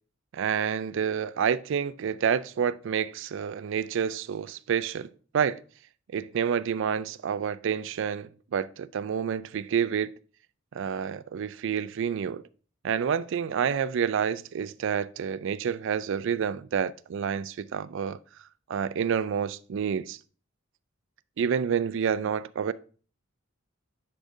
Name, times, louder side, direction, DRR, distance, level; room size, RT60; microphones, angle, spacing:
voice 1, 0.3-5.6 6.1-10.1 10.7-12.4 12.8-18.2 18.7-20.2 21.4-22.7, right 7 dB, 65° right, 0.4 m, -28 dB
10.0 x 4.9 x 2.6 m
head